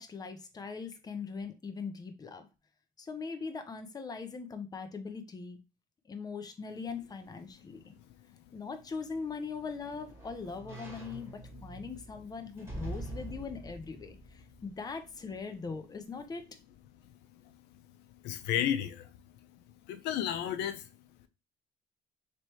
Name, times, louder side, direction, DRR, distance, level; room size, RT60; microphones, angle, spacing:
voice 1, 0.0-2.5 3.0-5.6 6.1-7.8 8.5-16.5, left 5 dB, 25° left, 0.7 m, -41 dB
sound 1, 8.9-15.3 15.7-15.8, right 1 dB, 15° right, 1.9 m, -45 dB
voice 2, 18.2-19.1 19.5-19.6 19.9-20.9, left 10 dB, 85° left, 0.6 m, -32 dB
3.2 x 3.0 x 4.5 m
cardioid pair, 110°, 17 cm